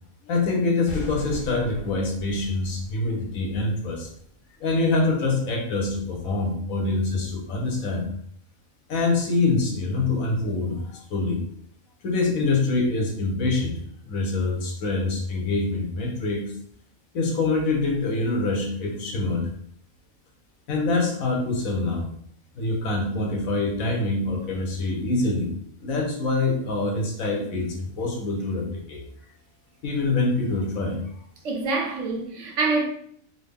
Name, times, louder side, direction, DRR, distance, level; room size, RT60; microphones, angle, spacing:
voice 1, 0.2-4.1 4.6-8.1 8.9-11.4 12.0-16.5 17.1-19.5 20.7-22.1 22.5-25.5 25.8-29.0 29.8-31.0, left 3 dB, 80° left, 1.3 m, -25 dB
sound 1, 0.9-4.4, equal, 45° left, 0.7 m, -40 dB
voice 2, 31.4-32.9, right 3 dB, 65° right, 0.9 m, -25 dB
3.8 x 2.0 x 3.4 m
omnidirectional pair, 1.4 m